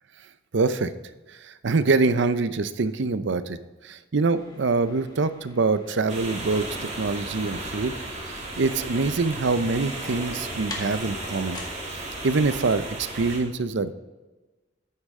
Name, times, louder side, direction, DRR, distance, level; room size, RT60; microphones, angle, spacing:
voice 1, 0.5-0.9 1.4-3.6 3.8-6.7 7.0-7.9 8.2-11.6 12.2-13.9, right 3 dB, 65° right, 13 dB, 0.6 m, -24 dB
sound 1, 4.2-12.3, left 2 dB, 20° left, 1.8 m, -45 dB
sound 2, 6.1-13.4, right 2 dB, 40° right, 2.8 m, -35 dB
13.0 x 9.7 x 3.7 m, 1.2 s
head